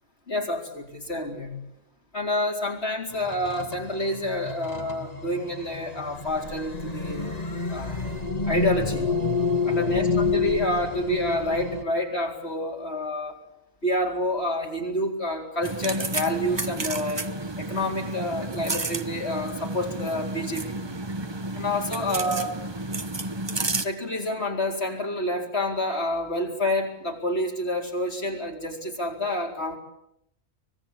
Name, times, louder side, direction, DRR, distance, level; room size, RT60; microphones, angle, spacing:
voice 1, 0.3-1.6 2.1-7.3 7.7-8.1 8.5-9.1 9.6-13.4 13.8-17.2 17.6-20.9 21.5-22.6 23.8-29.8, left 1 dB, 45° left, 1 dB, 4.5 m, -28 dB
sound 1, 3.1-11.8, left 4 dB, 30° left, 1.8 m, -29 dB
sound 2, 15.6-23.9, right 2 dB, 20° right, 0.9 m, -31 dB
25.0 x 20.0 x 8.6 m, 0.79 s
omnidirectional pair, 1.5 m